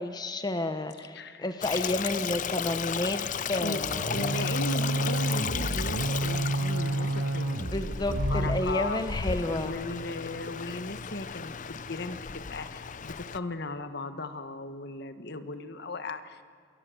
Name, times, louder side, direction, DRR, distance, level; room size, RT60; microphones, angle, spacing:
voice 1, 0.0-3.2 3.5-4.4 7.6-9.8, left 1 dB, 20° left, 9 dB, 1.0 m, -31 dB
voice 2, 1.1-1.5 3.6-3.8 4.1-9.0 9.5-16.4, left 2 dB, 60° left, 10 dB, 1.4 m, -37 dB
Stream, 1.6-13.4, left 6 dB, 40° left, 0.6 m, -34 dB
sound 1, 3.8-8.7, right 2 dB, 70° right, 1.3 m, -30 dB
27.5 x 22.0 x 7.9 m, 2.2 s
head